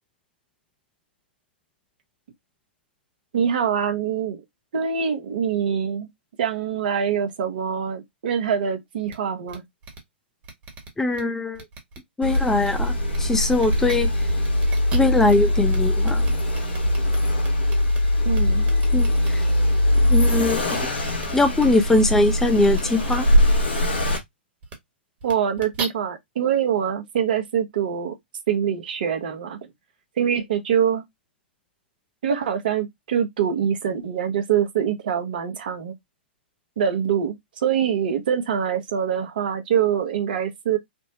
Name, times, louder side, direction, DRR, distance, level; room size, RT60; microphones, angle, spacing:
voice 1, 3.3-4.4 4.7-6.1 6.4-9.6 18.2-18.7 25.2-28.2 28.5-29.6 30.2-31.0 32.2-35.9 36.8-40.8, right 8 dB, 55° right, 0.8 m, -24 dB
sound 1, 9.1-9.2 9.5-9.6 9.8-10.0 10.4-11.2 11.5-12.0 12.3-12.7 13.1-13.2 13.6-14.0 14.4-15.4 15.7-15.8 16.0-18.0 18.3-19.3 20.2-20.5 21.0-21.3 21.6-21.7 22.6-22.8 23.1-23.2 24.0-24.2 24.6-24.7 25.2-25.8, right 3 dB, 30° right, 1.2 m, -36 dB
voice 2, 11.0-11.6 12.2-14.1 14.9-16.3 18.9-19.4 20.0-20.8 21.3-23.3, left 2 dB, 5° left, 0.5 m, -21 dB
Accelerating revving vroom, 12.2-24.2, left 1 dB, 70° left, 1.2 m, -21 dB
3.4 x 2.1 x 2.7 m
figure-of-eight pair, 120°, 6 cm